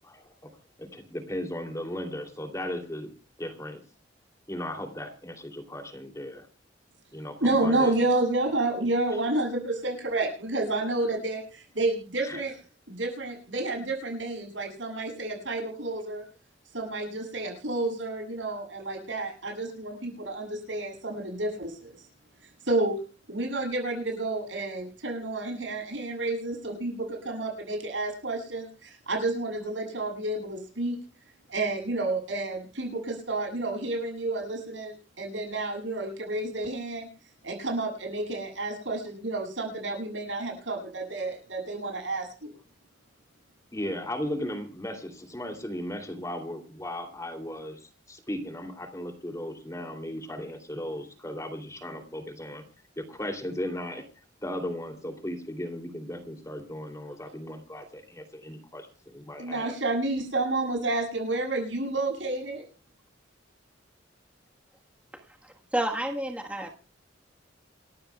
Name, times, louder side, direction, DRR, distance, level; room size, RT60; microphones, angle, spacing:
voice 1, 0.0-0.3 0.8-3.1 3.4-3.8 4.5-6.5 7.1-7.9 12.2-12.4 43.7-52.6 53.0-54.0 54.4-59.7, left 1 dB, 15° left, 5 dB, 2.9 m, -36 dB
voice 2, 7.4-12.6 12.9-16.2 16.7-22.0 22.6-23.0 23.3-31.0 31.5-37.1 37.4-42.5 59.4-62.6, right 2 dB, 85° right, 2 dB, 8.0 m, -30 dB
voice 3, 65.7-66.9, right 1 dB, 5° right, 2 dB, 1.4 m, -30 dB
28.5 x 13.5 x 2.3 m, 0.36 s
head